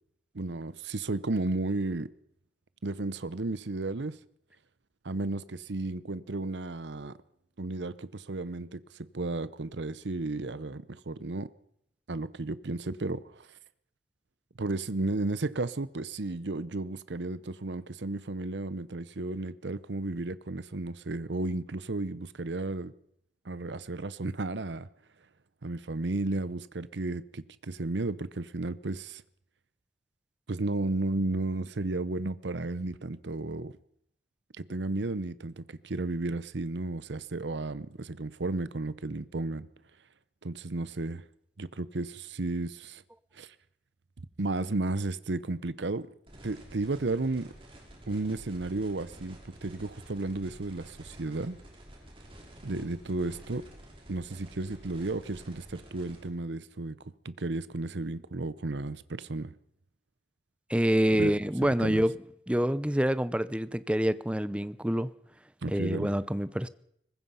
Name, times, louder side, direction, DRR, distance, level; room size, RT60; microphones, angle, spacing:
voice 1, 0.3-2.1 2.8-4.2 5.0-7.2 7.6-11.5 12.1-13.5 14.6-22.9 23.4-24.9 25.6-29.2 30.5-33.7 34.6-39.7 40.4-41.2 41.6-43.0 43.3-43.5 44.4-46.1 46.4-47.5 48.1-51.6 52.6-53.7 54.1-57.0 57.2-59.5 61.1-62.0 65.6-66.1, right 2 dB, 80° right, 0.8 m, -33 dB
sound 1, 46.3-56.3, right 1 dB, 30° right, 6.0 m, -50 dB
voice 2, 60.7-62.2 62.5-65.1 65.7-66.7, equal, 5° right, 0.7 m, -27 dB
23.0 x 20.0 x 5.7 m
head